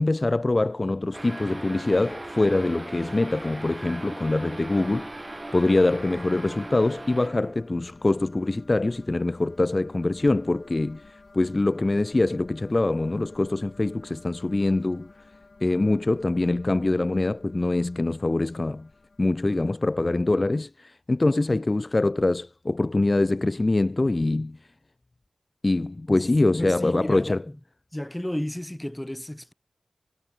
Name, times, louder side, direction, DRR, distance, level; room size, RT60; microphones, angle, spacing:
voice 1, 0.0-15.1 15.6-18.9 19.2-24.6 25.6-27.4, left 2 dB, 35° left, 0.5 m, -24 dB
sound 1, 0.9-20.1, left 3 dB, 55° left, 5.7 m, -53 dB
sound 2, 1.1-7.7, right 2 dB, 25° right, 2.8 m, -38 dB
voice 2, 26.6-27.4 27.9-29.5, left 1 dB, 10° left, 2.0 m, -32 dB
wide cardioid pair, 70°, 0 cm